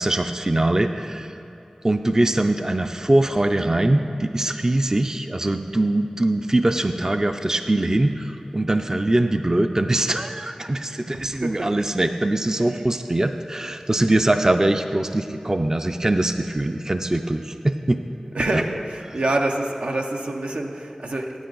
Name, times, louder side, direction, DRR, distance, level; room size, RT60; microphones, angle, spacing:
voice 1, 0.0-1.3 1.8-18.0 18.5-18.6, right 1 dB, 30° right, 7 dB, 0.4 m, -22 dB
voice 2, 11.1-11.7 18.3-21.3, right 2 dB, 85° right, 2 dB, 0.7 m, -26 dB
9.7 x 8.6 x 3.9 m, 2.9 s
wide cardioid pair, 50°, 2 cm